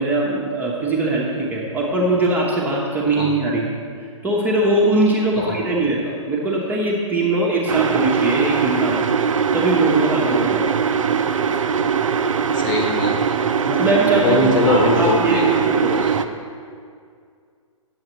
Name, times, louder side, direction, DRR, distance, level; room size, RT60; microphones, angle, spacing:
voice 1, 0.0-3.7 4.2-9.1 9.5-10.8 13.7-16.0, right 2 dB, 10° right, -4 dB, 0.8 m, -21 dB
sound 1, 7.7-16.2, right 6 dB, 70° right, 0.4 m, -21 dB
voice 2, 12.5-13.1 14.2-15.5 15.9-16.1, left 2 dB, 35° left, 1 dB, 1.2 m, -21 dB
9.6 x 7.2 x 3.0 m, 2.2 s
figure-of-eight pair, 120°, 17 cm